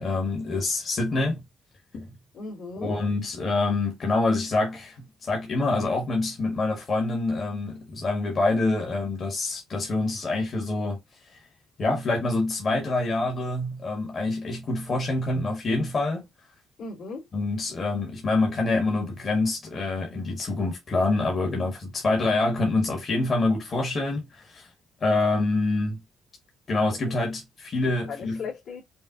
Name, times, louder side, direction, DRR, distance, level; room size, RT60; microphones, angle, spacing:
voice 1, 0.0-1.4 1.9-2.1 2.8-11.0 11.8-16.3 17.3-24.7 25.0-26.0 26.7-28.4, left 2 dB, 45° left, 1.7 m, -26 dB
voice 2, 2.3-3.0 16.8-17.3 26.9-27.0 28.1-28.8, left 4 dB, 70° left, 2.5 m, -36 dB
5.4 x 2.5 x 2.8 m
cardioid pair, 90°, 0 cm